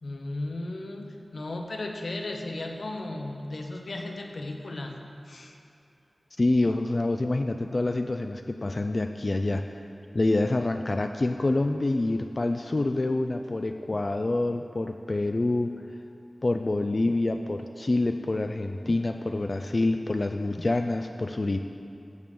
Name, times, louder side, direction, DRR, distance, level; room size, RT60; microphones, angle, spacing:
voice 1, 0.0-5.6, left 2 dB, 75° left, 2 dB, 0.8 m, -35 dB
voice 2, 6.4-9.8 10.1-15.7 16.4-21.6, left 2 dB, 45° left, 6 dB, 0.3 m, -27 dB
14.5 x 6.7 x 3.6 m, 2.6 s
wide cardioid pair, 85°, 0 cm